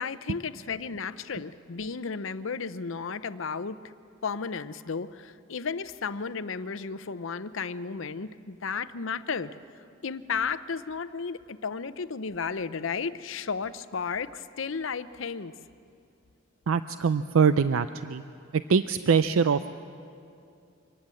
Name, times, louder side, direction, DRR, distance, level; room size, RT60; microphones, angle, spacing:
voice 1, 0.0-3.8 4.2-9.5 10.0-15.5, left 5 dB, 65° left, 13 dB, 0.7 m, -33 dB
voice 2, 16.7-18.2 18.5-19.7, right 6 dB, 75° right, 11 dB, 0.5 m, -23 dB
25.0 x 19.0 x 7.7 m, 2.5 s
head